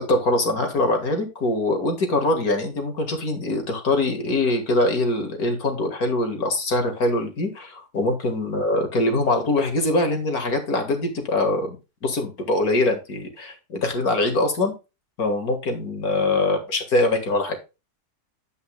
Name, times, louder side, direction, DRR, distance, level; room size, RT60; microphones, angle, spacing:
voice 1, 0.0-11.8 12.0-14.7 15.2-17.6, left 2 dB, 70° left, 5 dB, 2.3 m, -23 dB
9.4 x 8.4 x 2.3 m, 0.27 s
omnidirectional pair, 1.6 m